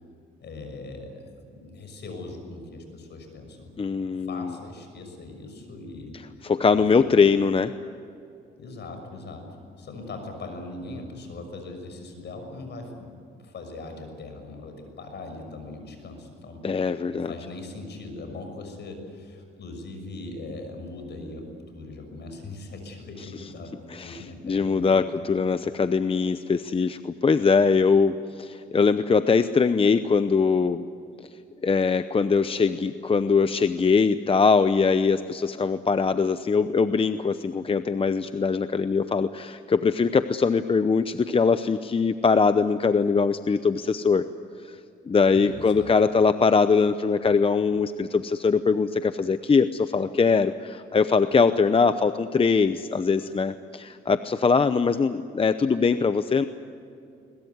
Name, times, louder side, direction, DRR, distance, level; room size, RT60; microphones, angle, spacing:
voice 1, 0.4-3.7 4.2-7.1 8.6-25.0 25.6-25.7 45.3-45.9, left 2 dB, 60° left, 5 dB, 6.4 m, -40 dB
voice 2, 3.8-4.5 6.4-7.7 16.6-17.3 23.9-24.2 24.4-30.8 31.6-44.3 44.7-44.8 45.1-56.5, left 5 dB, 30° left, 11 dB, 0.8 m, -22 dB
22.0 x 21.0 x 9.6 m, 2.5 s
cardioid pair, 90°, 20 cm